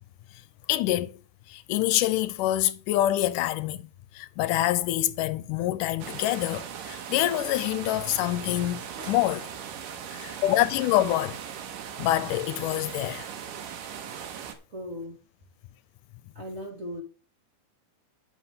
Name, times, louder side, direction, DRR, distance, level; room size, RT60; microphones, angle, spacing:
voice 1, 0.7-1.1 1.5-3.9 4.2-8.8 9.1-9.5 10.1-11.4 12.0-13.3, left 14 dB, 80° left, 2.1 m, -26 dB
sound 1, 6.0-14.5, right 8 dB, 90° right, 3.0 m, -39 dB
sound 2, 7.2-9.7 10.1-12.4, right 3 dB, 65° right, 3.1 m, -51 dB
voice 2, 14.7-15.2 16.3-17.0, left 1 dB, 30° right, 2.0 m, -37 dB
10.0 x 5.9 x 5.6 m
omnidirectional pair, 3.7 m